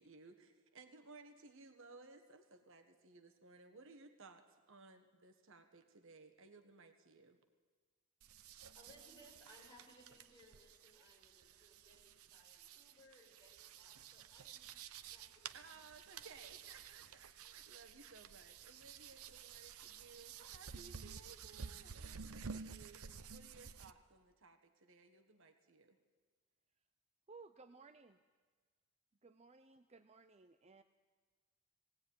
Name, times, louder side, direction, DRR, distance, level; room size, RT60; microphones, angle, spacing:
voice 1, 0.0-7.4 15.5-26.0, right 3 dB, 60° right, 6 dB, 1.5 m, -60 dB
sound 1, 8.2-23.9, right 6 dB, 75° right, 0.8 m, -53 dB
voice 2, 8.3-14.7 15.1-15.6 16.1-16.6, equal, 20° left, -2 dB, 5.4 m, -65 dB
voice 3, 27.3-28.2 29.2-30.8, right 4 dB, 30° right, 9 dB, 0.6 m, -59 dB
18.5 x 18.0 x 9.5 m, 1.5 s
head